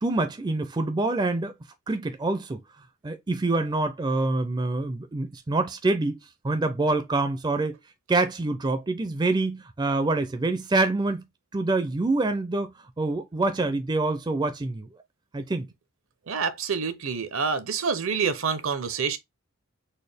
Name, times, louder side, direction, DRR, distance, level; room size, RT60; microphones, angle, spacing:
voice 1, 0.0-1.5 1.9-2.6 3.0-6.2 6.4-7.8 8.1-11.2 11.5-14.9 15.3-15.7, right 2 dB, 20° right, 0.4 m, -26 dB
voice 2, 16.3-19.2, right 5 dB, 70° right, 0.6 m, -27 dB
4.1 x 2.2 x 3.3 m
head